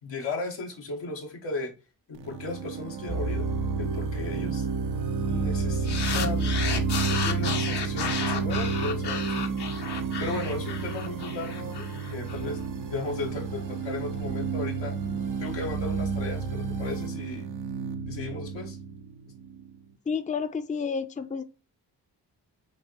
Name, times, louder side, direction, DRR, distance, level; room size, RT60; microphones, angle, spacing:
voice 1, 0.0-1.7 2.1-3.5 3.8-4.7 5.3-6.6 7.1-9.5 10.2-12.6 12.9-14.9 15.4-17.5 18.1-18.8, left 3 dB, 85° left, 1.4 m, -35 dB
sound 1, 2.2-19.8, right 5 dB, 75° right, 0.7 m, -31 dB
sound 2, 3.1-17.1, right 2 dB, 45° right, 0.8 m, -36 dB
sound 3, 5.9-12.4, left 6 dB, 65° left, 0.9 m, -33 dB
voice 2, 20.1-21.4, left 5 dB, 20° left, 0.5 m, -30 dB
6.7 x 2.6 x 3.0 m
supercardioid pair, 45°, 43 cm